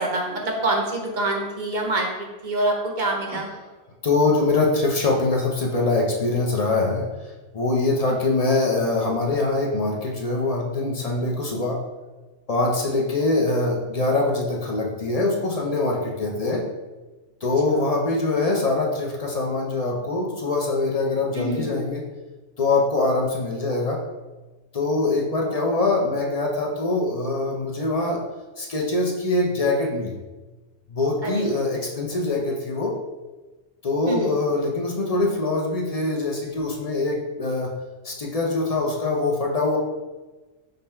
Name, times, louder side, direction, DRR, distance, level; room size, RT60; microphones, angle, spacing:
voice 1, 0.0-3.5 8.1-8.4 17.7-17.8 21.3-21.7 25.4-25.7 31.2-31.5 34.1-34.4, right 2 dB, 45° right, 0 dB, 0.8 m, -26 dB
voice 2, 4.0-7.1 7.5-11.8 12.5-16.6 17.4-22.0 22.6-24.0 24.7-28.2 28.6-30.1 30.9-32.9 33.8-37.7 38.0-39.8, left 2 dB, 40° left, 0 dB, 0.6 m, -23 dB
5.2 x 2.2 x 4.3 m, 1.2 s
omnidirectional pair, 1.2 m